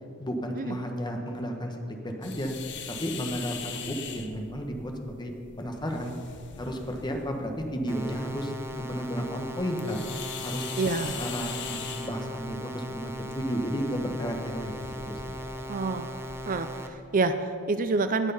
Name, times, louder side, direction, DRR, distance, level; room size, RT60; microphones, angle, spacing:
voice 1, 0.2-2.5 3.0-6.1 6.6-10.0 10.4-10.6 11.0-14.7 15.1-15.3, equal, 20° left, 3 dB, 1.2 m, -33 dB
sound 1, 2.2-16.4, left 6 dB, 55° left, 1.0 m, -42 dB
sound 2, 7.9-16.9, equal, 10° right, 0.8 m, -38 dB
voice 2, 10.8-11.2 15.7-16.1 16.5-18.3, right 3 dB, 40° right, 10 dB, 0.5 m, -27 dB
19.0 x 6.4 x 5.5 m, 2.3 s
head